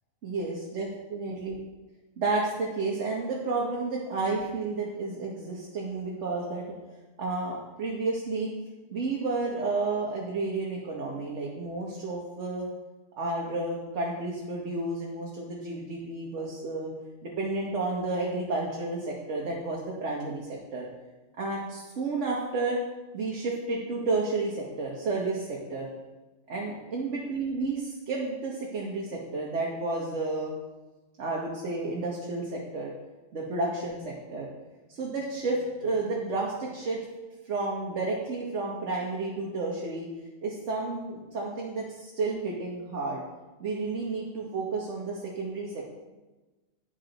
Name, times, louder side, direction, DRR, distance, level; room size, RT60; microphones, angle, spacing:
voice 1, 0.2-1.6 2.2-6.7 7.2-8.5 8.9-12.7 13.2-16.9 17.2-20.9 21.4-22.8 23.1-25.9 26.5-30.5 31.2-32.9 33.3-34.5 34.9-37.0 37.4-40.1 40.4-43.2 43.6-45.8, right 3 dB, 65° right, -3 dB, 1.3 m, -31 dB
10.5 x 3.9 x 3.9 m, 1.2 s
omnidirectional pair, 1.4 m